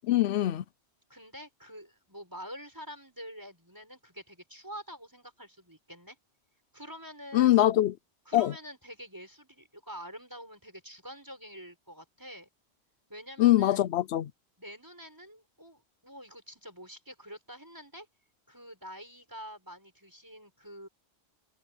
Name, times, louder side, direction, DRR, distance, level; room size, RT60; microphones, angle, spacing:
voice 1, 0.0-0.6 7.3-7.9 8.3-8.5 13.4-14.3, left 14 dB, 80° left, 0.8 m, -23 dB
voice 2, 1.1-6.2 6.7-7.6 8.2-12.5 13.1-13.8 14.6-18.1 18.5-20.9, equal, 20° right, 6.4 m, -46 dB
omnidirectional pair, 1.1 m